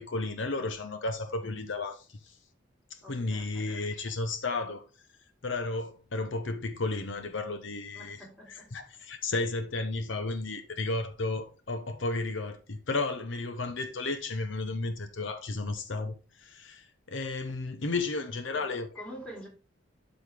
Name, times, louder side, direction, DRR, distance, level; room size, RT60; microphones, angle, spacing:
voice 1, 0.0-2.4 2.9-4.8 5.4-18.9, left 3 dB, 65° left, 0.8 m, -33 dB
voice 2, 3.0-3.8 7.9-8.9 18.5-19.5, right 1 dB, 5° left, 2.7 m, -47 dB
12.5 x 4.2 x 3.4 m
head